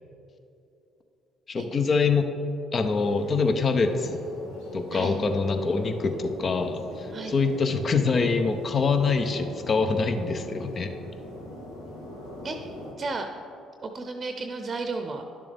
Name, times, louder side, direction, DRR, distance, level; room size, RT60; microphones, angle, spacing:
voice 1, 1.5-2.3 2.7-4.2 4.7-10.9, left 4 dB, 45° left, 7 dB, 0.7 m, -25 dB
sound 1, 2.7-12.9, left 1 dB, 85° left, 1.3 m, -40 dB
voice 2, 13.0-13.3 13.8-15.2, right 3 dB, 40° right, 5 dB, 0.7 m, -33 dB
10.5 x 6.9 x 3.5 m, 2.8 s
hypercardioid pair, 50°, 0 cm